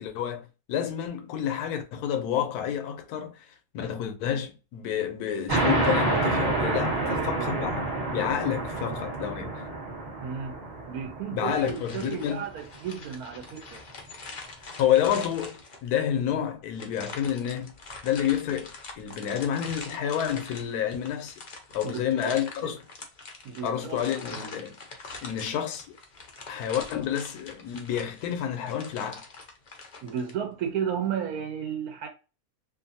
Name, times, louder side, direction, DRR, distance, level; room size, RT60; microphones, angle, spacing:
voice 1, 0.0-3.4 3.7-9.6 11.3-12.4 14.8-15.6 15.8-17.7 18.0-21.3 21.7-22.8 23.6-24.8 25.2-25.8 26.5-29.2, left 9 dB, 85° left, 1.1 m, -29 dB
sound 1, 5.5-12.6, right 2 dB, 35° right, 1.1 m, -28 dB
voice 2, 6.9-7.7 10.2-10.6 10.9-13.8 21.8-22.4 22.6-22.7 23.4-24.0 24.3-24.4 30.0-32.1, right 8 dB, 80° right, 1.1 m, -33 dB
sound 2, 11.6-16.0 16.7-30.3, left 3 dB, 50° left, 0.5 m, -44 dB
2.6 x 2.5 x 2.6 m
omnidirectional pair, 1.6 m